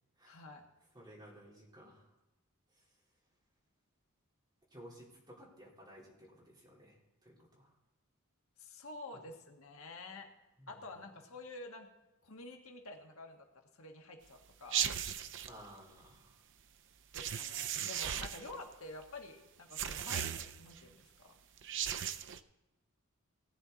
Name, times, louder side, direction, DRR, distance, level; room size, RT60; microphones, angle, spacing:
voice 1, 0.2-0.6 8.6-10.3 10.7-11.9 12.2-13.5 13.7-14.8 17.1-21.3, left 2 dB, 65° left, 3 dB, 1.5 m, -49 dB
voice 2, 0.9-2.0 4.7-7.0 7.2-7.7 10.6-10.8 15.5-16.3, equal, 20° right, -5 dB, 3.7 m, -55 dB
sound 1, 14.7-15.5 17.1-18.6 19.7-20.8 21.6-22.4, right 9 dB, 60° right, 0.5 m, -37 dB
18.0 x 9.9 x 4.1 m, 1.0 s
head